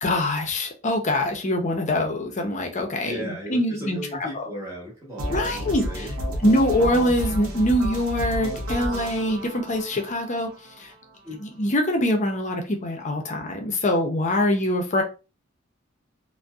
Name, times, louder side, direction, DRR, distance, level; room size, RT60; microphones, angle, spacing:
voice 1, 0.0-4.0 5.3-6.1 6.4-10.5 10.8-10.9 11.4-15.0, left 1 dB, 35° left, 0.5 m, -24 dB
voice 2, 3.0-6.5 11.2-11.4, equal, 15° right, 0.8 m, -36 dB
sound 1, 5.2-11.2, equal, 70° right, 0.6 m, -31 dB
2.6 x 2.1 x 2.3 m
head